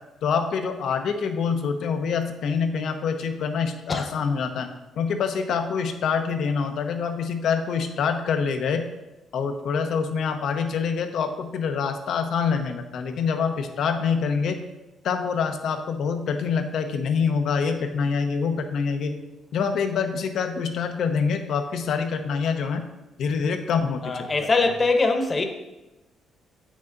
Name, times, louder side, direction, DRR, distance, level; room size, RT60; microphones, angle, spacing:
voice 1, 0.2-4.7 5.0-8.8 9.3-14.6 15.0-19.2 19.5-22.8 23.2-24.5, left 6 dB, 70° left, 6 dB, 0.9 m, -26 dB
voice 2, 24.0-25.4, left 3 dB, 30° left, 5 dB, 1.1 m, -22 dB
8.5 x 6.2 x 3.9 m, 1.0 s
cardioid pair, 90°, 0 cm